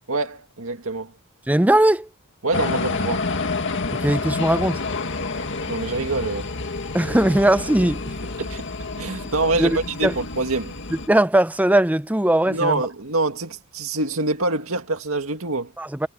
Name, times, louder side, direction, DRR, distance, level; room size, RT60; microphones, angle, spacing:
voice 1, 0.1-1.1 2.4-3.3 5.7-6.5 8.4-8.7 9.0-10.7 12.5-15.7, right 2 dB, 70° right, 2.2 m, -25 dB
voice 2, 1.5-2.1 4.0-4.8 6.9-8.0 9.6-9.8 10.0-10.1 11.1-12.8 15.8-16.1, right 1 dB, 5° right, 0.5 m, -19 dB
sound 1, 2.5-11.1, left 3 dB, 55° left, 2.0 m, -29 dB
head